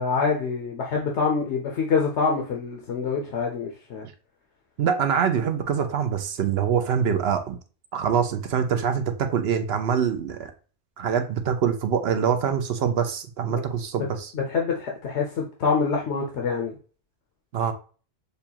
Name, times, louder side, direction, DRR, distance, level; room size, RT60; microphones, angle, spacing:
voice 1, 0.0-4.1 14.3-16.8, left 5 dB, 85° left, 1 dB, 1.1 m, -26 dB
voice 2, 4.8-7.6 7.9-10.5 11.0-14.3 17.5-17.7, right 7 dB, 70° right, 8 dB, 0.8 m, -24 dB
6.8 x 2.4 x 2.8 m, 0.38 s
omnidirectional pair, 1.1 m